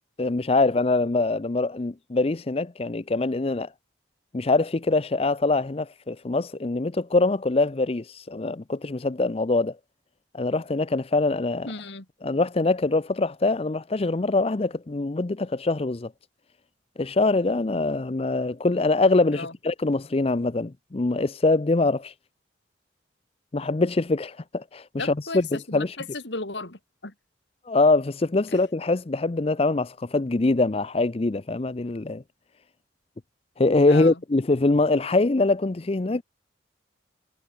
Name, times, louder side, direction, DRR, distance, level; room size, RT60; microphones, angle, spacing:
voice 1, 0.2-3.7 4.3-9.8 10.3-11.7 12.2-16.1 17.0-22.1 23.5-26.0 27.7-32.2 33.6-36.2, left 3 dB, 30° left, 0.5 m, -23 dB
voice 2, 11.7-12.1 19.3-19.5 25.0-27.1 28.5-28.6 33.9-34.2, left 3 dB, 70° left, 3.4 m, -35 dB
head